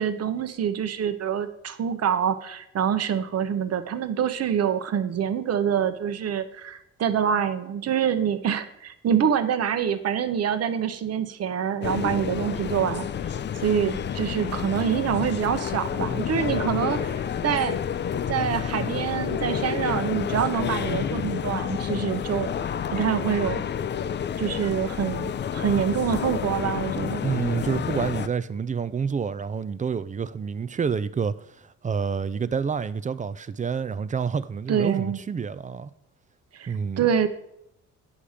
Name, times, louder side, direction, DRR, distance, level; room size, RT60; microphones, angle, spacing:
voice 1, 0.0-13.1 13.6-17.8 18.3-22.5 22.9-23.6 24.4-27.2 34.7-35.2 36.5-37.3, right 8 dB, 55° right, 0.9 m, -26 dB
sound 1, 11.8-28.3, left 8 dB, 35° left, 0.5 m, -29 dB
voice 2, 27.2-35.9 36.7-37.0, right 6 dB, 25° right, 0.4 m, -28 dB
8.5 x 5.7 x 4.9 m
cardioid pair, 90°, 30 cm